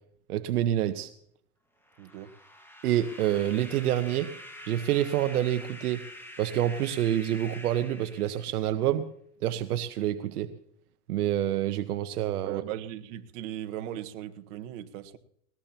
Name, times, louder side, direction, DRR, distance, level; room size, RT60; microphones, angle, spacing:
voice 1, 0.3-1.1 2.8-4.3 4.7-6.0 6.4-9.1 9.4-10.5 11.1-12.6, right 12 dB, 80° right, 10 dB, 1.1 m, -27 dB
sound 1, 1.8-8.9, left 1 dB, 5° left, 1.9 m, -46 dB
voice 2, 2.0-2.3 12.4-15.2, right 12 dB, 55° right, 7 dB, 1.5 m, -38 dB
20.5 x 19.5 x 2.9 m, 0.67 s
supercardioid pair, 140°, 45 cm